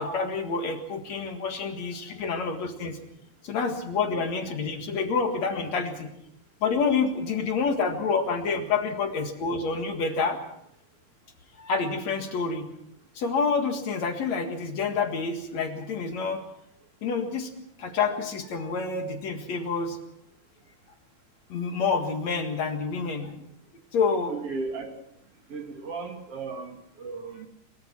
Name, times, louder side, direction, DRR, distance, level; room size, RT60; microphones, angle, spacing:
voice 1, 0.0-3.0 3.4-6.1 6.6-10.4 11.6-12.7 13.2-16.4 17.0-17.5 17.8-20.0 21.5-23.3 23.9-24.3, left 5 dB, 60° left, 5 dB, 2.9 m, -28 dB
voice 2, 24.3-24.9 25.5-27.5, right 4 dB, 50° right, 4 dB, 3.2 m, -35 dB
22.5 x 22.5 x 6.0 m, 0.76 s
omnidirectional pair, 3.8 m